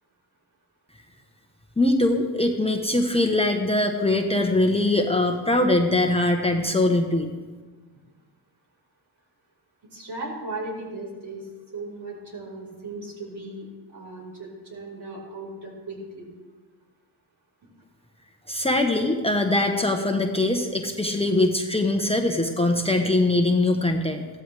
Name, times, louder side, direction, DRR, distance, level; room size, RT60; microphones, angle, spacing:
voice 1, 1.8-7.3 18.5-24.3, left 2 dB, 10° left, 3 dB, 1.1 m, -22 dB
voice 2, 9.9-11.5 11.7-16.3, right 2 dB, 55° right, -2 dB, 5.0 m, -37 dB
15.5 x 13.5 x 3.5 m, 1.4 s
cardioid pair, 70°, 46 cm